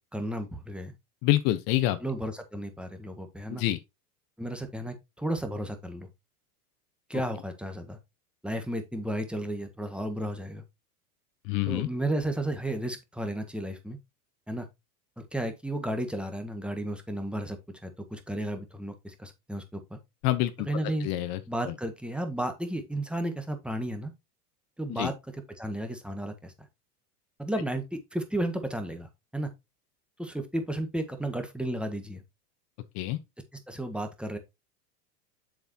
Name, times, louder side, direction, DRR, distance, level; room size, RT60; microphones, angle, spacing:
voice 1, 0.1-1.0 2.0-3.6 4.4-6.1 7.1-8.0 8.4-10.6 11.7-14.0 14.5-14.7 15.2-20.0 20.7-21.1 21.5-24.1 24.8-26.5 27.4-29.5 30.2-32.2 33.5-34.4, right 1 dB, ahead, 1.5 m, -33 dB
voice 2, 1.2-2.0 3.5-3.8 11.5-11.9 20.2-20.7 21.0-21.4 21.7-21.8 24.9-25.1 32.9-33.2, left 15 dB, 50° left, 1.0 m, -26 dB
7.2 x 7.1 x 2.8 m
hypercardioid pair, 105°, 46 cm